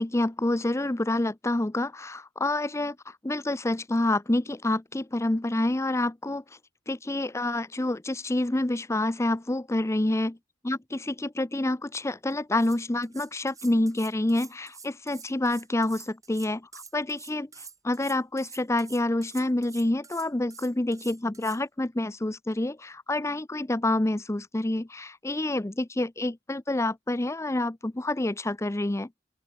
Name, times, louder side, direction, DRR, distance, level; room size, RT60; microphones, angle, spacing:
voice 1, 0.0-6.4 6.9-10.4 10.6-17.5 17.8-29.1, left 1 dB, 15° left, 0.6 m, -28 dB
sound 1, 12.3-12.4 12.6-21.6, right 5 dB, 20° right, 6.6 m, -47 dB
open air
head